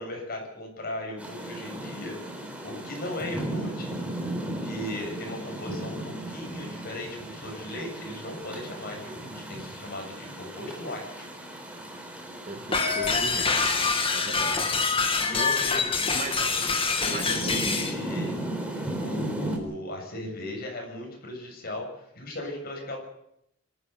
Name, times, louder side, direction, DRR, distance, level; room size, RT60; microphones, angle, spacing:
voice 1, 0.0-2.2 2.6-3.9 4.6-11.3 14.2-14.7 15.3-17.4 17.7-18.4 19.0-23.0, left 1 dB, 50° left, 1 dB, 7.5 m, -37 dB
Rain, 1.2-19.6, right 1 dB, 5° right, 4.0 m, -36 dB
voice 2, 12.5-13.5 14.1-14.6 15.3-15.5 16.1-16.4 17.1-17.8, right 2 dB, 40° right, 6 dB, 2.2 m, -37 dB
sound 1, 12.7-17.9, left 4 dB, 25° left, 2.2 m, -25 dB
25.5 x 13.5 x 9.5 m, 0.78 s
head